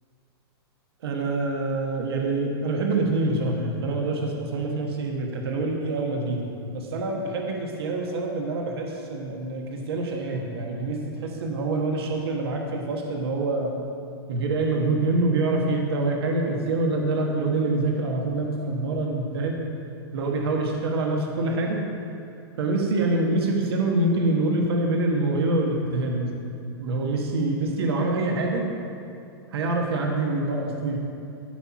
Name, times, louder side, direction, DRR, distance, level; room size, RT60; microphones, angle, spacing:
voice 1, 1.0-13.7 14.3-19.6 20.1-21.8 22.6-26.3 26.8-28.6 29.5-31.0, right 2 dB, 70° right, 0 dB, 1.4 m, -25 dB
13.0 x 4.5 x 5.8 m, 2.6 s
supercardioid pair, 175°, 14 cm